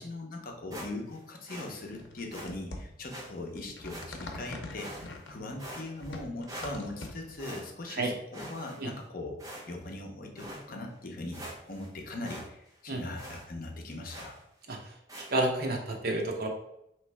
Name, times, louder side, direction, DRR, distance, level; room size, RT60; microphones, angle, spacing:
voice 1, 0.0-14.3, left 2 dB, 50° left, 2 dB, 0.8 m, -40 dB
sound 1, 0.7-1.2 1.5-1.7 2.3-2.5 3.1-3.3 3.9-4.4 4.8-5.3 5.6-6.2 6.5-7.1 7.4-8.0 8.3-9.0 9.4-9.9 10.4-10.6 11.0-11.1 11.3-11.9 12.2-12.5 12.7-12.8 13.2-13.4 14.1-14.4 15.1-15.3, right 1 dB, 20° right, 0.9 m, -44 dB
sound 2, 1.8-7.5, left 2 dB, 85° left, 0.7 m, -44 dB
voice 2, 15.2-16.5, right 2 dB, 55° right, 1 dB, 0.8 m, -30 dB
3.2 x 3.1 x 4.6 m, 0.80 s
head